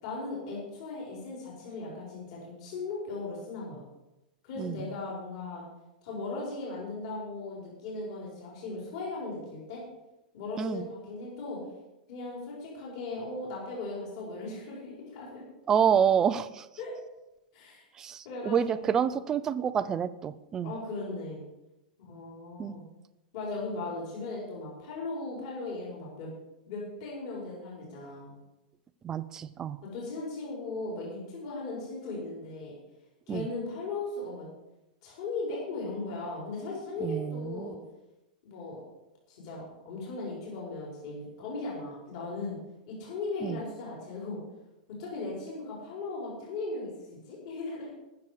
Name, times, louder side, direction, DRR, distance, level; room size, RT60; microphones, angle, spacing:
voice 1, 0.0-3.8 4.4-5.6 6.0-9.8 10.3-11.6 12.1-15.4 16.8-17.0 17.5-17.9 18.2-18.7 20.6-21.4 22.1-22.8 23.3-26.3 26.7-28.3 29.8-32.7 33.3-34.5 35.0-37.8 38.4-38.8 39.3-42.6 42.9-44.4 45.0-46.9 47.3-47.9, left 3 dB, 40° left, -4 dB, 4.3 m, -37 dB
voice 2, 4.6-4.9 10.6-10.9 15.7-16.7 18.0-20.7 22.6-22.8 29.0-29.8 33.3-33.5 37.0-37.7 43.4-43.6, right 8 dB, 10° right, 13 dB, 0.4 m, -28 dB
20.5 x 7.1 x 4.9 m, 0.94 s
supercardioid pair, 180°, 5 cm